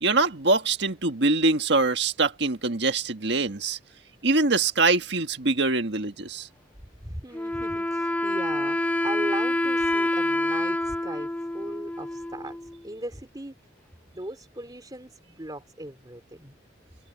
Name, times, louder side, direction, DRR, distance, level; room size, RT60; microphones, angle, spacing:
voice 1, 0.0-3.8 4.2-6.5, right 3 dB, 65° right, 1.7 m, -23 dB
voice 2, 7.0-13.5 14.1-16.6, right 1 dB, 20° right, 3.5 m, -38 dB
Wind instrument woodwind instrument, 7.3-12.8, left 1 dB, 10° left, 0.6 m, -27 dB
head